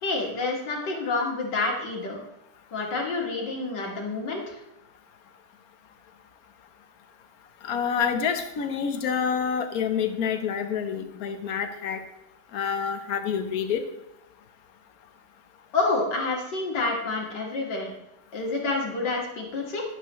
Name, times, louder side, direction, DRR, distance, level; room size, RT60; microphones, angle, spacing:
voice 1, 0.0-2.2 2.7-4.6 15.7-17.9 18.3-19.8, left 3 dB, 90° left, -1 dB, 2.8 m, -28 dB
voice 2, 7.6-12.0 12.5-13.8, left 7 dB, 60° left, 7 dB, 1.4 m, -27 dB
11.5 x 10.5 x 3.1 m, 0.88 s
omnidirectional pair, 1.8 m